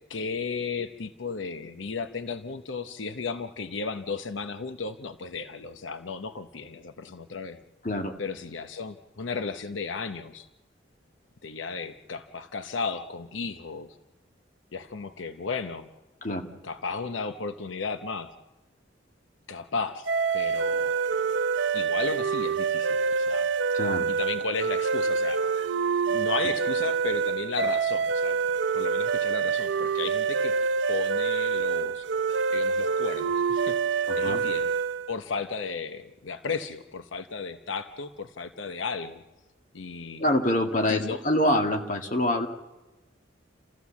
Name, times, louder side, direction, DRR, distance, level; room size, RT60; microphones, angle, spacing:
voice 1, 0.1-7.6 8.2-10.5 11.4-14.0 14.7-15.9 16.6-18.3 19.5-20.1 20.3-21.0 21.7-23.5 24.2-25.4 26.1-28.4 28.7-30.5 30.9-32.0 32.5-34.7 35.1-39.2 39.7-40.2 40.9-41.2, left 4 dB, 90° left, 9 dB, 0.8 m, -34 dB
sound 1, 20.1-35.1, right 5 dB, 80° right, 0.7 m, -26 dB
voice 2, 23.7-24.1 34.1-34.4 40.2-42.5, left 1 dB, 45° left, 4 dB, 1.8 m, -25 dB
29.0 x 14.5 x 7.2 m, 1.1 s
head